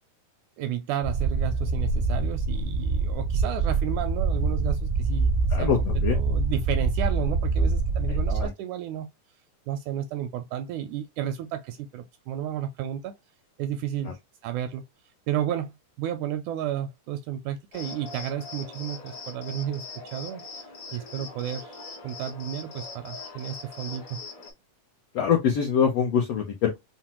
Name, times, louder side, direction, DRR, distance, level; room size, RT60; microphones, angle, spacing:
voice 1, 0.6-5.3 5.6-9.1 9.7-13.1 13.6-14.8 15.3-19.9 20.1-20.4 20.9-21.8 22.0-24.2, right 10 dB, 80° right, 1.8 m, -32 dB
sound 1, 1.0-8.5, right 3 dB, 60° right, 0.6 m, -25 dB
voice 2, 5.5-6.2 8.1-8.5 14.0-14.1 25.1-26.8, left 7 dB, 80° left, 1.4 m, -24 dB
Cricket, 17.7-24.5, left 3 dB, 60° left, 1.3 m, -41 dB
5.7 x 2.1 x 2.9 m
omnidirectional pair, 3.7 m